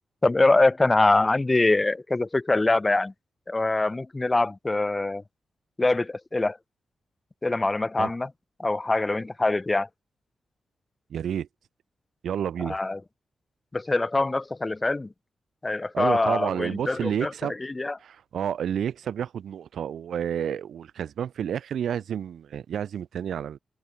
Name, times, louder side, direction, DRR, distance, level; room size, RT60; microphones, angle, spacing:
voice 1, 0.2-3.1 3.5-5.2 5.8-6.6 7.4-8.3 8.6-9.9 12.6-13.0 13.7-15.1 15.6-18.0, left 2 dB, 20° left, 3.4 m, -24 dB
voice 2, 11.1-11.5 12.2-12.8 15.9-17.5 18.0-23.6, right 9 dB, 85° right, 6.1 m, -30 dB
wide cardioid pair, 155°, 0 cm